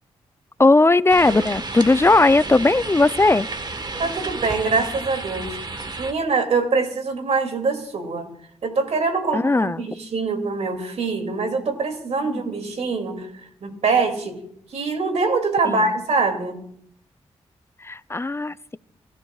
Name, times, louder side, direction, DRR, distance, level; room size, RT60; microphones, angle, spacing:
voice 1, 0.6-3.5 9.3-9.9 12.3-12.4 15.6-15.8 17.8-18.8, left 2 dB, 20° left, 0.5 m, -18 dB
sound 1, 1.1-6.1, right 3 dB, 35° right, 1.4 m, -32 dB
voice 2, 4.0-5.6 6.0-8.3 8.6-13.3 13.6-14.4 14.7-16.6, right 4 dB, 70° right, 2.6 m, -24 dB
27.0 x 13.0 x 2.4 m
supercardioid pair, 50°, 12 cm